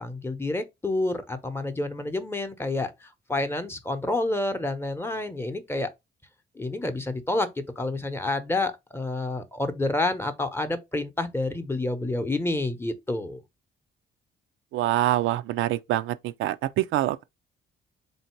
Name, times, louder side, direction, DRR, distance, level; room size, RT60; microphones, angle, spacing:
voice 1, 0.0-5.9 6.6-13.4, left 2 dB, 10° left, 0.8 m, -29 dB
voice 2, 14.7-17.2, right 14 dB, 80° right, 0.4 m, -25 dB
3.7 x 2.7 x 4.4 m
cardioid pair, 90°, 20 cm